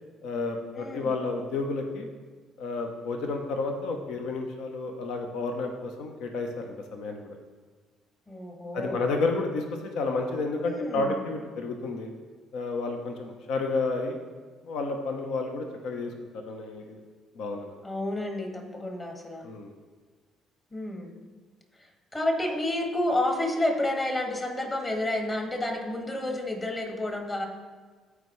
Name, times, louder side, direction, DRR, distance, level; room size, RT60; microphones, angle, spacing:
voice 1, 0.2-2.1 2.6-7.2 8.7-9.6 9.9-12.1 12.5-14.2 14.7-16.1 16.4-17.0 17.3-17.7 19.4-19.7, left 3 dB, 70° left, 4 dB, 0.8 m, -31 dB
voice 2, 0.7-1.1 8.3-9.0 10.6-11.2 17.8-19.5 20.7-21.1 21.8-27.5, left 1 dB, 30° left, 2 dB, 2.0 m, -30 dB
14.0 x 4.8 x 3.2 m, 1.4 s
hypercardioid pair, 60°, 0 cm